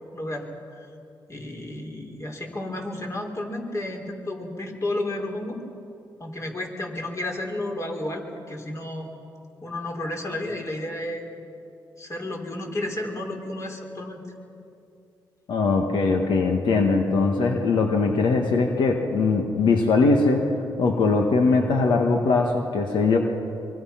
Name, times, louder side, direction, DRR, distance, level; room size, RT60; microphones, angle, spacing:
voice 1, 0.1-0.9 1.3-5.6 6.2-9.1 9.6-11.3 12.0-14.2, left 1 dB, 40° left, 1 dB, 4.1 m, -32 dB
voice 2, 15.5-20.4 20.8-23.2, left 4 dB, 80° left, 3 dB, 1.7 m, -21 dB
24.5 x 24.0 x 5.9 m, 2.7 s
cardioid pair, 70°, 8 cm